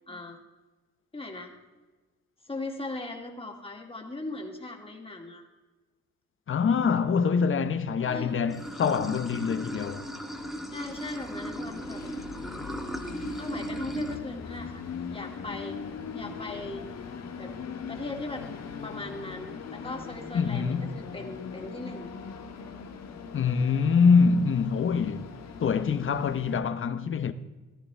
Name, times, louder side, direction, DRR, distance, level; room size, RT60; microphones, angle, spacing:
voice 1, 0.1-0.4 1.1-1.5 2.4-5.5 8.0-8.3 10.7-12.0 13.4-14.8 15.1-15.8 16.1-16.9 17.4-17.5 17.9-22.1, left 2 dB, 20° left, 2.4 m, -39 dB
voice 2, 6.5-10.0 20.3-21.0 23.3-25.3 25.6-27.3, left 5 dB, 45° left, 0.9 m, -25 dB
Train, 8.1-26.6, left 6 dB, 60° left, 1.4 m, -41 dB
Water / Sink (filling or washing), 8.5-14.2, right 1 dB, ahead, 1.2 m, -37 dB
14.5 x 14.5 x 3.4 m
cardioid pair, 90°, 30 cm